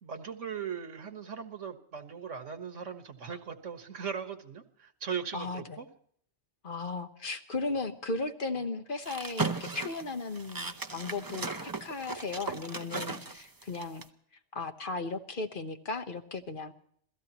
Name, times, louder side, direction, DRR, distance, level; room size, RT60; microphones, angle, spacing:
voice 1, 0.0-5.9 8.6-8.7, right 7 dB, 90° right, 7 dB, 1.8 m, -39 dB
voice 2, 5.3-5.8 6.6-14.0 14.5-16.7, left 3 dB, 45° left, 7 dB, 1.2 m, -36 dB
sound 1, 9.1-14.0, right 4 dB, 20° right, 0.6 m, -36 dB
27.5 x 17.0 x 3.0 m, 0.62 s
omnidirectional pair, 1.2 m